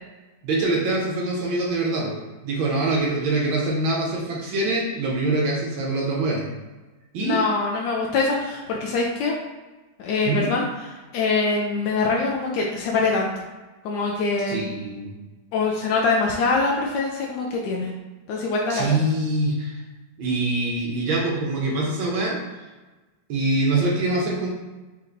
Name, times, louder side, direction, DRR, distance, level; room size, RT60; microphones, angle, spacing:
voice 1, 0.4-2.1 2.4-6.4 7.1-7.4 10.2-10.5 14.5-15.1 18.7-19.8 20.2-22.4 23.3-24.5, right 2 dB, 75° right, -2 dB, 1.6 m, -24 dB
voice 2, 7.2-9.3 10.0-10.6 11.1-13.5 13.8-14.6 15.5-17.9 18.3-19.0, left 3 dB, 75° left, -1 dB, 1.0 m, -24 dB
4.5 x 2.9 x 3.8 m, 1.2 s
omnidirectional pair, 2.2 m